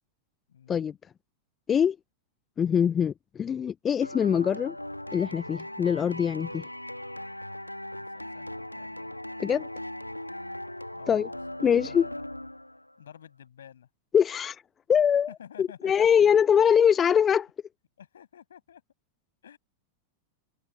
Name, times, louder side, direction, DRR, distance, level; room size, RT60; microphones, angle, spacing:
voice 1, 0.5-0.8 7.9-9.2 10.9-12.3 13.0-13.9 15.3-16.5 18.0-18.8 19.4-19.6, left 9 dB, 65° left, 8.0 m, -50 dB
voice 2, 2.6-4.7 5.1-6.6 9.4-9.7 11.1-11.3 11.6-12.1 14.1-14.6 14.9-15.3 15.6-17.5, left 8 dB, 25° left, 0.7 m, -23 dB
sound 1, 4.0-12.9, left 1 dB, 90° left, 1.9 m, -39 dB
figure-of-eight pair, 90°, 0 cm